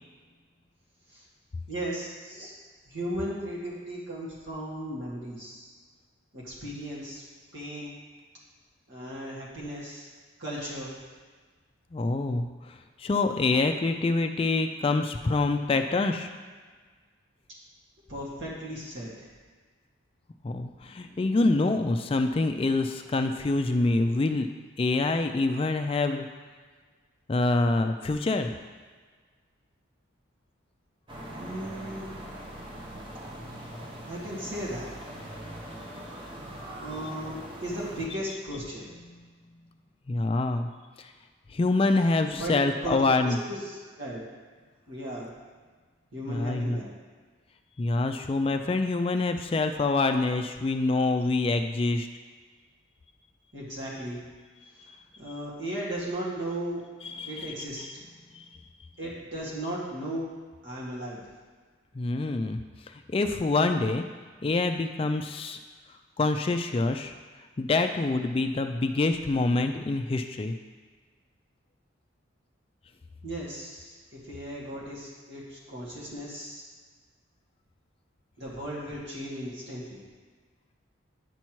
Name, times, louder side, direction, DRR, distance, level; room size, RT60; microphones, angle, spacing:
voice 1, 1.7-2.5 2.9-5.7 6.3-7.2 7.5-8.0 8.9-10.1 10.4-10.9 18.1-19.3 20.8-21.2 31.3-32.1 34.1-34.9 36.8-38.9 42.3-42.6 42.8-44.2 44.9-45.3 46.1-46.9 53.5-54.2 55.2-56.8 57.3-58.0 59.0-60.3 60.6-61.2 73.2-76.7 78.4-80.0, right 1 dB, 65° right, -6 dB, 1.9 m, -36 dB
voice 2, 11.9-12.5 13.0-16.3 20.4-24.5 24.8-26.3 27.3-28.5 39.1-39.2 40.1-40.7 41.0-41.1 41.5-43.4 46.3-46.8 47.8-52.1 57.1-57.5 57.8-57.9 58.3-58.5 61.9-62.6 63.1-64.0 64.4-65.6 66.2-67.1 67.6-70.5, left 3 dB, 25° left, 7 dB, 0.3 m, -26 dB
sound 1, 31.1-38.1, right 1 dB, 25° right, 0.7 m, -41 dB
9.7 x 5.7 x 3.1 m, 1.5 s
head